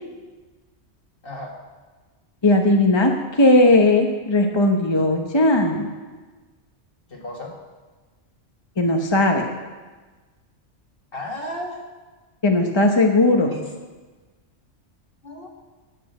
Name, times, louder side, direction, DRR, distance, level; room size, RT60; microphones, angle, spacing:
voice 1, 1.2-1.5 7.1-7.5 11.1-11.9 13.5-13.7 15.2-15.5, left 1 dB, 50° left, 0 dB, 2.0 m, -33 dB
voice 2, 2.4-5.9 8.8-9.5 12.4-13.5, left 2 dB, 25° left, 3 dB, 0.8 m, -17 dB
10.0 x 8.6 x 7.9 m, 1.3 s
omnidirectional pair, 1.2 m